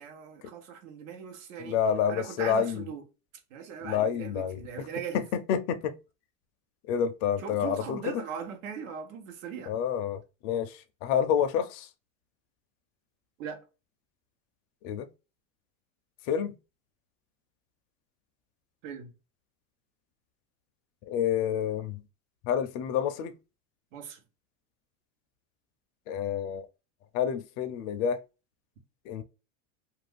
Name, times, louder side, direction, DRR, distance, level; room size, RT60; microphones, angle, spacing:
voice 1, 0.0-1.8 2.1-3.0 3.5-5.2 7.4-9.7 13.4-13.6 18.8-19.1 23.9-24.2, right 7 dB, 85° right, 1.0 m, -39 dB
voice 2, 1.6-2.8 3.8-4.9 5.1-5.2 5.5-5.9 6.9-8.2 9.7-11.9 14.8-15.1 16.3-16.5 21.1-22.0 22.4-23.3 26.1-26.7 27.1-28.2 29.1-29.2, left 8 dB, 55° left, 0.5 m, -28 dB
2.5 x 2.3 x 3.3 m
supercardioid pair, 155°, 38 cm